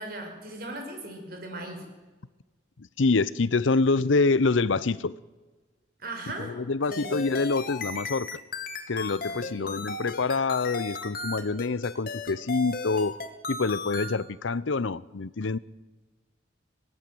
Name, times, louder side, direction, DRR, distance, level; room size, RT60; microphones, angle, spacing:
voice 1, 0.0-1.8 6.0-6.5 6.9-7.1 9.4-9.7, right 2 dB, 50° right, 5.6 m, -38 dB
voice 2, 3.0-5.2 6.4-8.4 8.9-13.1 13.5-15.6, left 3 dB, 80° left, 0.7 m, -26 dB
sound 1, 6.9-14.2, left 3 dB, 50° left, 2.0 m, -35 dB
24.0 x 18.0 x 7.8 m
head